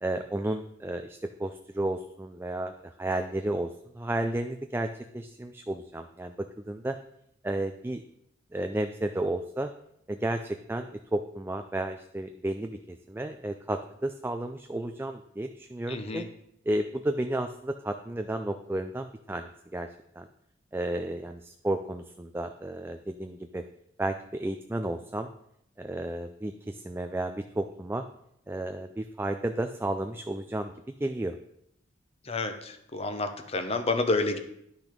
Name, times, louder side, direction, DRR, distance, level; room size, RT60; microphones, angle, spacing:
voice 1, 0.0-7.0 7.4-8.0 8.5-9.7 10.1-16.3 16.7-19.9 20.2-20.3 20.7-23.6 24.0-25.3 25.8-28.0 28.5-30.7 31.0-31.4, right 1 dB, 10° right, 6 dB, 0.4 m, -32 dB
voice 2, 15.9-16.2 32.3-34.4, left 3 dB, 35° left, 8 dB, 1.0 m, -29 dB
10.5 x 6.0 x 5.2 m, 0.74 s
head